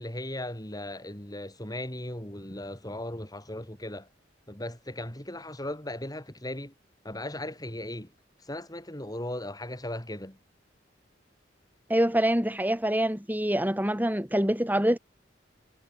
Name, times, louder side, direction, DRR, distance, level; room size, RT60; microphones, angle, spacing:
voice 1, 0.0-4.1 4.5-6.7 7.0-8.1 8.4-10.4, left 1 dB, 20° left, 5.9 m, -37 dB
voice 2, 11.9-15.0, right 1 dB, 10° right, 4.5 m, -25 dB
head